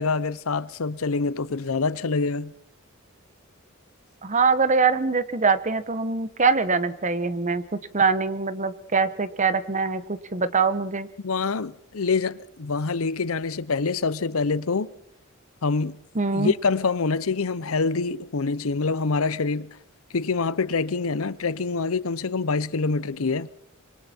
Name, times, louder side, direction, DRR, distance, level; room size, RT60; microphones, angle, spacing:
voice 1, 0.0-2.5 11.2-14.9 15.6-16.0 16.3-19.8 20.1-23.5, left 4 dB, 85° left, 0.7 m, -25 dB
voice 2, 4.2-7.6 7.9-11.1 16.1-16.5, right 4 dB, 35° right, 1.1 m, -23 dB
25.5 x 23.5 x 4.4 m
head